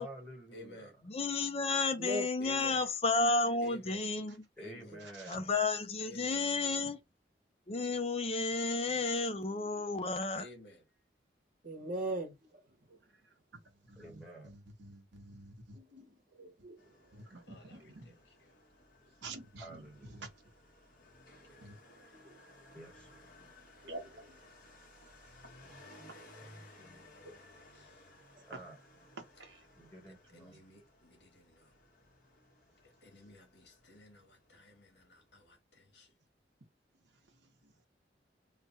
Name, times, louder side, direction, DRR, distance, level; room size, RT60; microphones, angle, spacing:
voice 1, 0.0-0.9 4.6-5.5 14.0-14.6 19.6-20.3 22.7-23.5 26.4-26.5 28.5-28.8 29.8-30.6, right 1 dB, 5° left, 1.2 m, -50 dB
voice 2, 0.5-1.0 2.4-2.9 3.6-4.1 4.6-5.0 6.0-6.5 10.4-10.8 17.5-18.6 21.4-22.2 26.4-28.1 30.1-31.7 32.8-36.1, left 1 dB, 70° left, 1.5 m, -55 dB
voice 3, 1.1-4.4 5.3-7.0 7.7-10.4, left 3 dB, 35° left, 0.5 m, -32 dB
voice 4, 11.6-12.6 12.9-13.0 15.7-16.8 17.1-17.2 22.1-22.4 23.8-23.9, right 1 dB, 50° right, 1.0 m, -40 dB
voice 5, 13.6-15.8 17.1-18.1 19.2-19.8 20.1-20.3 21.6-21.8 23.9-24.0 29.4-29.6 37.6-37.7, right 2 dB, 90° right, 0.9 m, -49 dB
Motorcycle, 16.8-35.6, left 1 dB, 50° left, 1.4 m, -59 dB
3.2 x 2.2 x 4.0 m
head